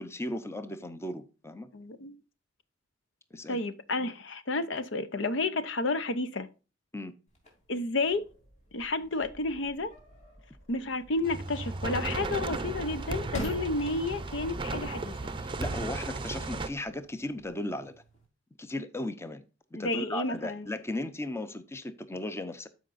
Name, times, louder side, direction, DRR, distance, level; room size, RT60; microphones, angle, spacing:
voice 1, 0.0-1.7 3.3-3.6 6.9-7.1 15.4-17.9 18.6-19.4 19.7-22.7, left 1 dB, 15° left, 0.7 m, -36 dB
voice 2, 1.7-2.1 3.5-6.5 7.7-8.2 8.7-9.9 10.7-15.2 19.8-20.6, left 2 dB, 70° left, 0.7 m, -31 dB
sound 1, 7.3-18.2, equal, 40° left, 3.2 m, -47 dB
sound 2, 11.2-16.7, right 3 dB, 25° right, 0.6 m, -35 dB
13.0 x 5.0 x 2.5 m
head